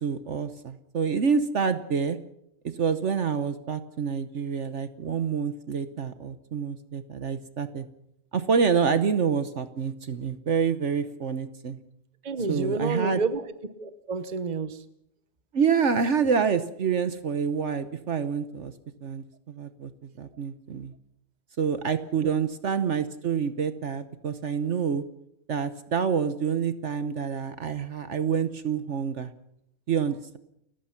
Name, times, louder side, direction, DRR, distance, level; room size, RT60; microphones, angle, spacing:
voice 1, 0.0-2.2 2.7-7.9 8.3-11.8 12.5-13.2 15.5-18.7 19.0-19.9 20.2-20.9 21.6-25.0 25.5-29.3 29.9-30.4, right 6 dB, 60° right, 11 dB, 1.2 m, -27 dB
voice 2, 12.2-13.5 13.8-14.8, right 3 dB, 35° right, 12 dB, 1.1 m, -29 dB
29.5 x 15.5 x 5.8 m, 0.77 s
omnidirectional pair, 1.5 m